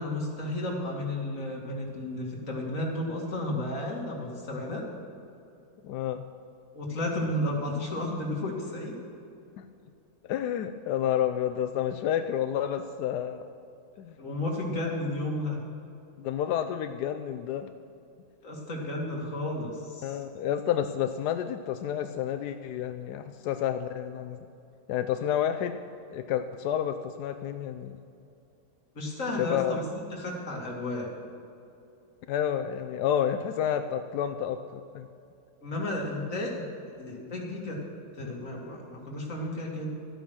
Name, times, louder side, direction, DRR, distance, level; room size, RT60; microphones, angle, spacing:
voice 1, 0.0-4.8 6.7-9.0 14.2-15.6 18.4-20.2 28.9-29.8 30.1-31.1 35.6-36.6 37.0-37.8 38.2-39.9, left 1 dB, 40° left, -2 dB, 2.4 m, -32 dB
voice 2, 5.8-6.2 9.6-9.7 10.3-13.4 14.0-14.1 16.2-17.7 20.0-24.4 24.9-25.8 26.1-28.0 29.4-29.8 32.3-35.1, left 10 dB, 75° left, 8 dB, 0.9 m, -30 dB
12.5 x 9.1 x 6.3 m, 2.6 s
omnidirectional pair, 2.2 m